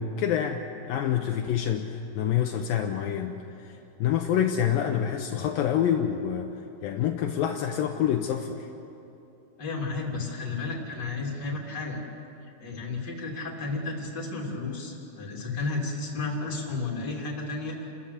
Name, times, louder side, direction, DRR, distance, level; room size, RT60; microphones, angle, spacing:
voice 1, 0.0-3.7 4.0-6.5 6.8-8.7, left 9 dB, 75° left, 4 dB, 2.4 m, -27 dB
voice 2, 9.6-12.0 12.4-17.9, left 3 dB, 30° left, -2 dB, 3.4 m, -33 dB
29.5 x 14.0 x 8.4 m, 2.8 s
omnidirectional pair, 4.3 m